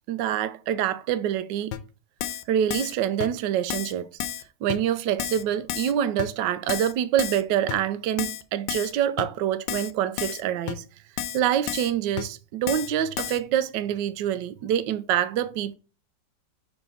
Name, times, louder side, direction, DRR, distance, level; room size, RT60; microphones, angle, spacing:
voice 1, 0.1-1.7 2.5-4.1 4.6-10.8 11.3-15.8, right 10 dB, 75° right, 1.2 m, -26 dB
Keyboard (musical), 1.7-1.8 2.2-2.4 2.7-2.9 3.2-3.3 3.7-3.9 4.2-4.4 4.7-4.8 5.2-5.4 5.7-5.9 6.2-6.3 6.7-6.9 7.2-7.4 7.7-7.8 8.2-8.4 8.7-8.9 9.2-9.3 9.7-9.9 10.2-10.4 10.7-10.8 11.2-11.4 11.7-11.9 12.2-12.3 12.7-12.9 13.2-13.4, left 10 dB, 80° left, 1.3 m, -31 dB
5.6 x 4.2 x 5.5 m
omnidirectional pair, 2.0 m